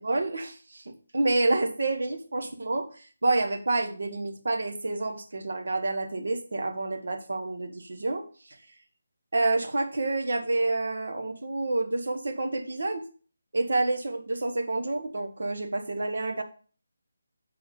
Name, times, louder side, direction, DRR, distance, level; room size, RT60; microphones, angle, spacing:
voice 1, 0.0-8.6 9.3-13.1 13.5-16.4, right 2 dB, 65° right, 6 dB, 1.4 m, -28 dB
7.0 x 4.6 x 5.5 m, 0.40 s
figure-of-eight pair, 155°, 0 cm